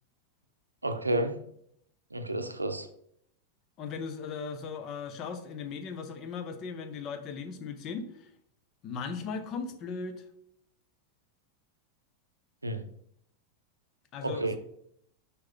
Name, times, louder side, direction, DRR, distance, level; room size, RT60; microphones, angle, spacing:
voice 1, 0.8-1.4 2.1-2.9 12.6-12.9 14.2-14.6, right 1 dB, 80° right, 8 dB, 0.6 m, -30 dB
voice 2, 3.8-8.3 8.8-10.2 14.1-14.6, left 5 dB, 35° left, 8 dB, 0.8 m, -37 dB
6.4 x 4.7 x 3.7 m, 0.71 s
figure-of-eight pair, 90°, 0 cm